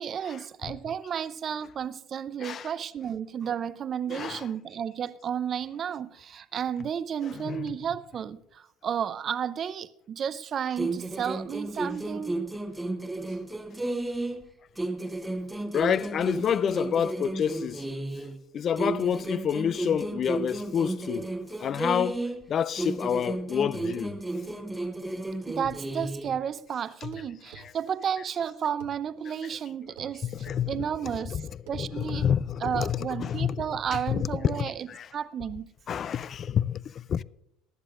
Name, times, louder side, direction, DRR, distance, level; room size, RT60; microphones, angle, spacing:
voice 1, 0.0-12.4 25.5-30.3 30.7-31.4 31.7-32.3 32.6-35.7, right 8 dB, 40° right, 0.5 m, -32 dB
voice 2, 2.4-2.7 4.1-4.5 7.3-7.7 15.7-17.8 18.5-21.3 21.6-22.2 22.5-24.2 27.0-27.1 27.6-27.7 30.2-30.8 31.1-31.4 31.8-33.6 33.9-35.1 35.9-37.2, left 8 dB, 40° left, 0.4 m, -28 dB
sound 1, 10.8-14.5 14.8-18.4 18.8-22.5 22.8-26.4, right 2 dB, 10° right, 1.0 m, -33 dB
sound 2, 26.2-26.5 27.1-27.7 28.8-29.0 30.0-30.2 30.5-30.6 31.7-31.8, right 7 dB, 80° right, 1.3 m, -47 dB
19.0 x 11.0 x 2.5 m
supercardioid pair, 100°, 0 cm